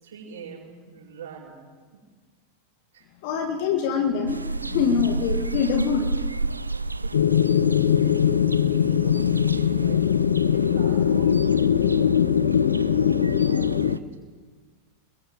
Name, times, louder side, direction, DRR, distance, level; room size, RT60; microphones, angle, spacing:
voice 1, 0.0-1.5 1.9-2.0 2.9-3.0 6.9-7.3 7.9-8.1 8.7-12.2 12.7-14.0, right 6 dB, 65° right, -2 dB, 7.9 m, -43 dB
voice 2, 3.2-6.1, left 6 dB, 50° left, 5 dB, 2.0 m, -24 dB
sound 1, 4.3-14.0, right 2 dB, 80° right, 0.5 m, -33 dB
sound 2, 7.1-14.0, left 8 dB, 65° left, 0.8 m, -21 dB
29.5 x 22.0 x 4.9 m, 1.5 s
figure-of-eight pair, 90°, 0 cm